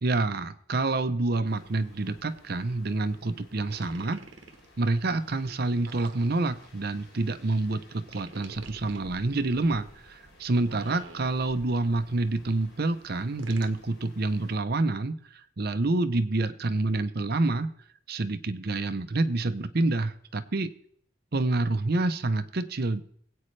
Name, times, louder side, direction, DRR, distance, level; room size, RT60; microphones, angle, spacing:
voice 1, 0.0-4.2 4.8-17.7 18.1-20.7 21.3-23.0, right 2 dB, 50° right, 11 dB, 0.7 m, -28 dB
sound 1, 1.4-14.6, equal, 75° left, 3.4 m, -55 dB
sound 2, 3.7-4.7 5.9-6.7 8.1-9.0 10.5-11.7 13.4-13.8, right 3 dB, 70° right, 1.1 m, -47 dB
22.0 x 8.6 x 3.3 m, 0.64 s
head